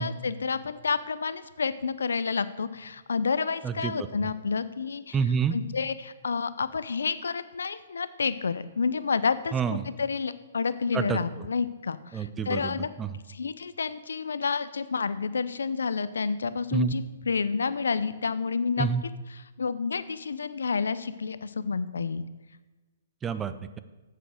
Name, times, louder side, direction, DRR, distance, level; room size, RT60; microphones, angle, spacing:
voice 1, 0.0-5.2 5.5-12.9 13.3-18.9 19.3-22.2, left 5 dB, 80° left, 15 dB, 0.6 m, -29 dB
voice 2, 5.1-5.6 9.5-9.9 10.9-11.2 12.1-13.1 16.7-16.9 18.8-19.0 23.2-23.8, right 6 dB, 15° right, 12 dB, 0.6 m, -28 dB
7.9 x 7.8 x 6.5 m, 1.2 s
hypercardioid pair, 130°, 0 cm